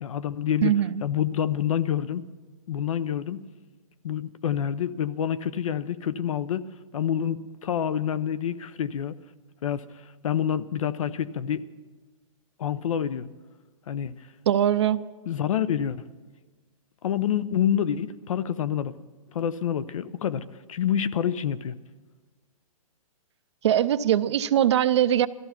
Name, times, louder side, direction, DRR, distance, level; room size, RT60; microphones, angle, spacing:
voice 1, 0.0-0.7 1.0-2.2 2.7-3.5 4.0-6.7 6.9-9.2 9.6-9.8 10.2-11.6 12.6-13.3 13.9-14.2 15.3-16.0 17.0-18.9 19.3-21.7, left 9 dB, 65° left, 15 dB, 0.7 m, -27 dB
voice 2, 0.6-1.0 14.5-15.0 23.6-25.3, right 10 dB, 50° right, 13 dB, 0.6 m, -21 dB
17.0 x 14.0 x 5.8 m, 1.3 s
hypercardioid pair, 160°, 18 cm